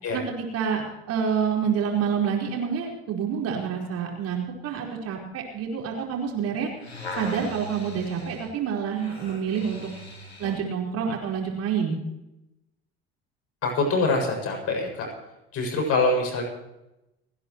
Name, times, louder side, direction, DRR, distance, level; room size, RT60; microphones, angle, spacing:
voice 1, 0.1-6.7 7.2-9.9 10.4-12.0, right 7 dB, 50° right, 0 dB, 4.8 m, -28 dB
sound 1, 6.6-10.7 11.3-11.4, left 2 dB, 90° left, 3.0 m, -39 dB
voice 2, 13.6-15.1 15.5-16.4, left 3 dB, 50° left, 1 dB, 6.8 m, -24 dB
29.5 x 10.5 x 3.1 m, 0.91 s
figure-of-eight pair, 60°, 31 cm